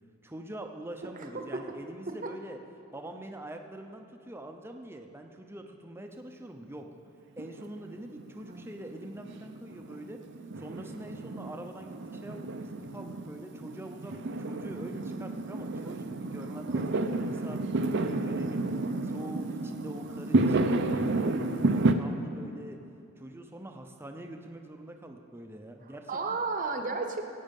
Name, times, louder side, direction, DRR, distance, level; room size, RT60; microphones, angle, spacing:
voice 1, 0.2-2.6 2.9-6.9 7.4-10.2 10.6-18.7 19.0-22.8 23.2-26.4, right 1 dB, 10° right, 4 dB, 0.7 m, -44 dB
voice 2, 1.2-1.6 2.2-2.3 8.4-8.7 25.8-27.2, right 4 dB, 35° right, 5 dB, 0.9 m, -33 dB
Fireworks, 7.4-21.9, right 2 dB, 55° right, 0.6 m, -31 dB
17.0 x 8.6 x 5.4 m, 2.6 s
head